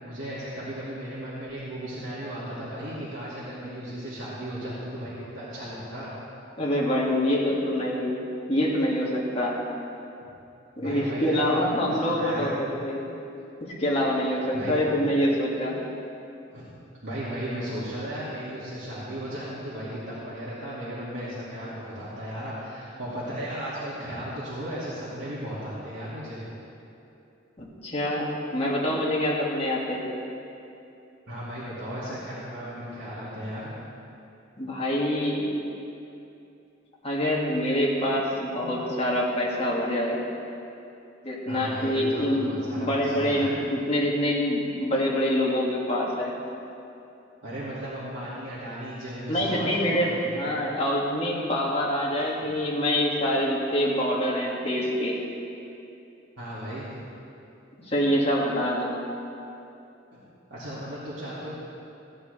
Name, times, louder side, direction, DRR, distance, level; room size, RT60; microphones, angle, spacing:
voice 1, 0.0-6.1 10.8-12.6 14.3-14.9 16.5-16.7 17.0-26.4 31.3-33.7 41.5-43.6 47.4-50.4 56.4-57.0 60.1-60.2 60.5-61.5, equal, 85° right, -11 dB, 2.4 m, -35 dB
voice 2, 6.6-8.1 8.5-9.6 10.8-13.1 13.6-15.8 27.6-30.1 34.6-35.4 37.0-40.2 41.2-46.4 49.3-55.2 57.8-59.0, equal, 30° left, -4 dB, 2.0 m, -25 dB
16.0 x 10.0 x 3.4 m, 2.8 s
head